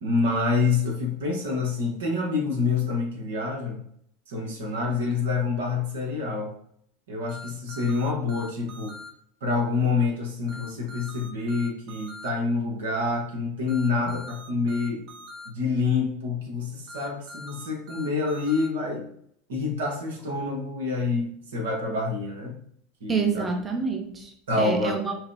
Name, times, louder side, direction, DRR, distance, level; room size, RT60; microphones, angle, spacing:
voice 1, 0.0-3.8 4.3-6.5 7.1-9.0 9.4-15.0 15.5-19.1 19.5-22.5 23.0-23.4 24.5-24.9, left 4 dB, 80° right, 1 dB, 1.0 m, -27 dB
sound 1, 7.3-9.1 10.5-12.3 13.7-15.5 16.9-18.7, left 2 dB, 55° right, 1.1 m, -43 dB
voice 2, 23.1-25.2, right 5 dB, 25° right, 5 dB, 0.6 m, -28 dB
4.6 x 2.1 x 3.4 m, 0.66 s
hypercardioid pair, 90°, 0 cm